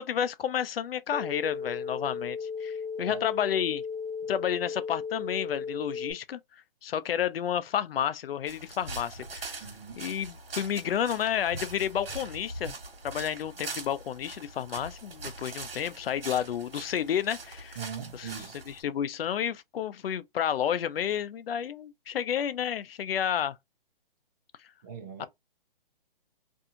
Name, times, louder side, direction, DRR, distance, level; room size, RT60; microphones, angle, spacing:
voice 1, 0.0-3.8 4.3-9.6 10.0-12.7 13.0-17.8 18.1-18.3 18.7-23.6 25.2-25.3, left 9 dB, 80° left, 0.5 m, -31 dB
sound 1, 1.1-6.1, left 5 dB, 70° right, 0.8 m, -35 dB
sound 2, 8.5-18.8, right 3 dB, 85° right, 1.1 m, -42 dB
voice 2, 9.6-10.0 17.8-18.6 24.8-25.3, right 7 dB, 20° right, 0.4 m, -40 dB
2.6 x 2.3 x 2.7 m
hypercardioid pair, 150°, 29 cm